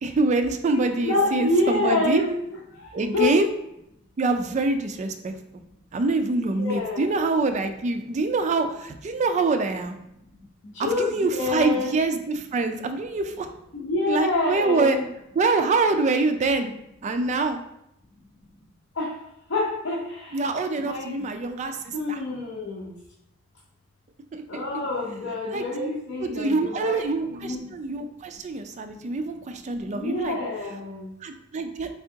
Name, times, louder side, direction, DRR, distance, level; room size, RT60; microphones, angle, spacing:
voice 1, 0.0-2.2 2.9-3.5 4.2-5.3 5.9-10.0 10.8-13.5 14.1-15.0 15.4-16.7 17.0-17.6 20.3-22.2 24.3-24.6 25.5-25.9 26.2-30.4 31.2-31.9, right 3 dB, 35° right, 6 dB, 0.3 m, -25 dB
voice 2, 0.7-2.4 2.7-3.4 6.6-7.2 10.6-11.9 13.7-15.1 19.0-19.1 19.5-20.4 20.8-21.1 21.9-22.9 24.5-27.6 29.9-31.1, left 2 dB, 65° left, -5 dB, 0.7 m, -27 dB
3.6 x 3.3 x 2.7 m, 0.80 s
head